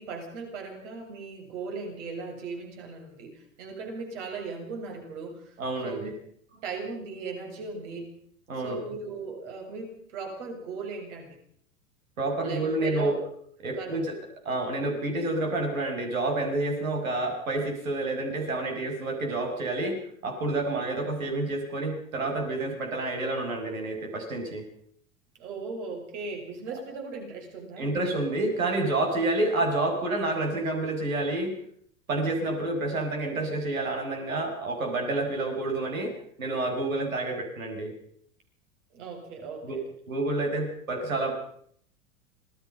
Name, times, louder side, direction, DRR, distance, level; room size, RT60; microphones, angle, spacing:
voice 1, 0.0-5.6 5.8-6.1 6.5-8.1 8.5-11.4 12.4-13.1 13.7-14.0 25.4-27.9 38.9-39.8, right 4 dB, 60° right, 2 dB, 7.4 m, -38 dB
voice 2, 5.6-6.1 8.5-8.8 12.2-13.2 13.6-14.2 14.4-24.6 27.8-31.5 32.1-37.9 39.6-39.8 40.1-41.4, right 2 dB, 80° right, 3 dB, 6.8 m, -29 dB
26.5 x 19.0 x 5.6 m, 0.63 s
hypercardioid pair, 90°, 41 cm